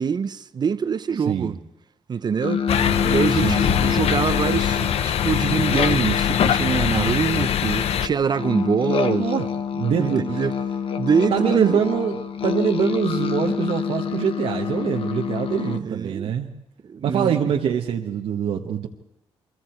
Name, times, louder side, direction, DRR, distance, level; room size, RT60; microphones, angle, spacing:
voice 1, 0.0-1.6 2.1-2.6 3.0-9.3 10.0-10.6 11.0-11.8 15.5-16.3 16.8-17.5 18.6-18.7, right 6 dB, 45° right, 0.8 m, -24 dB
sound 1, 2.4-15.8, left 7 dB, 60° left, 1.3 m, -26 dB
sound 2, 2.7-8.1, left 9 dB, 80° left, 0.8 m, -23 dB
voice 2, 2.8-3.1 3.4-3.9 9.2-9.5 9.7-10.4 11.3-12.2 12.4-16.5 17.0-18.9, right 8 dB, 80° right, 1.4 m, -24 dB
29.5 x 23.0 x 4.6 m
cardioid pair, 110°, 10 cm